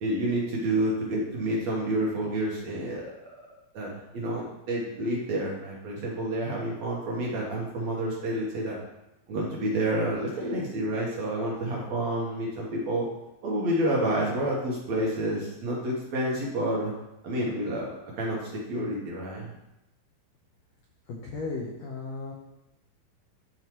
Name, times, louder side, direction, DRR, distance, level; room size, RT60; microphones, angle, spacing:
voice 1, 0.0-3.1 3.7-8.8 9.3-13.1 13.4-16.9 17.2-17.9 18.2-19.5, right 1 dB, 60° right, -4 dB, 2.0 m, -29 dB
voice 2, 21.1-22.3, left 3 dB, 80° left, -3 dB, 1.6 m, -35 dB
11.0 x 4.7 x 3.0 m, 0.91 s
omnidirectional pair, 4.2 m